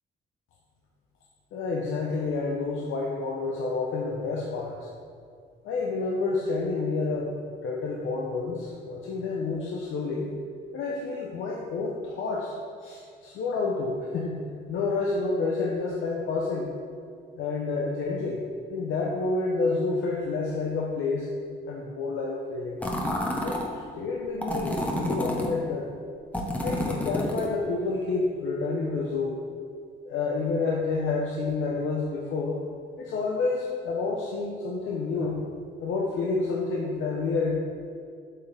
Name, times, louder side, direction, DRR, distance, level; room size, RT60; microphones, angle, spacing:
voice 1, 1.5-4.9 5.6-7.3 7.6-10.3 10.7-14.4 14.7-16.7 17.3-21.3 21.7-22.8 23.4-25.9 26.6-29.4 30.0-32.6 33.0-35.4 35.8-37.5, left 3 dB, 80° left, -2 dB, 0.9 m, -29 dB
sound 1, 22.8-23.7 24.4-25.5 26.3-27.5, left 1 dB, 5° left, 1.1 m, -29 dB
8.5 x 5.8 x 3.5 m, 2.2 s
cardioid pair, 90°, 20 cm